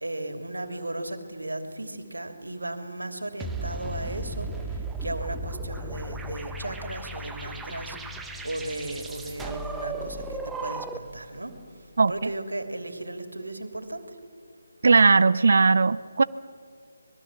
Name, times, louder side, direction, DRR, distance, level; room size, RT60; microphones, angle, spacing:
voice 1, 0.0-4.5 5.0-8.0 8.4-11.5 12.1-14.0, right 1 dB, 75° right, 7 dB, 3.0 m, -35 dB
sound 1, 3.4-11.2, right 2 dB, 5° right, 0.9 m, -35 dB
voice 2, 12.0-12.3 14.8-16.2, right 4 dB, 55° right, 16 dB, 0.7 m, -19 dB
25.5 x 21.5 x 7.4 m, 2.2 s
figure-of-eight pair, 150°, 0 cm